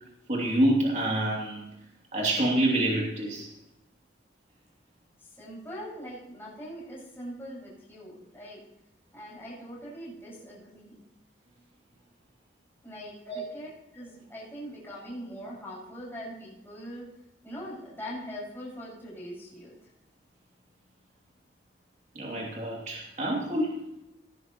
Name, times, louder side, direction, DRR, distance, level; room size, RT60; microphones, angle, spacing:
voice 1, 0.3-1.6 2.1-3.5 13.2-13.4 22.1-23.7, right 1 dB, 40° right, -2 dB, 3.0 m, -27 dB
voice 2, 5.2-8.6 9.1-11.0 12.8-17.0 17.4-19.8, equal, 10° left, -7 dB, 5.9 m, -42 dB
18.5 x 10.5 x 3.1 m, 0.88 s
head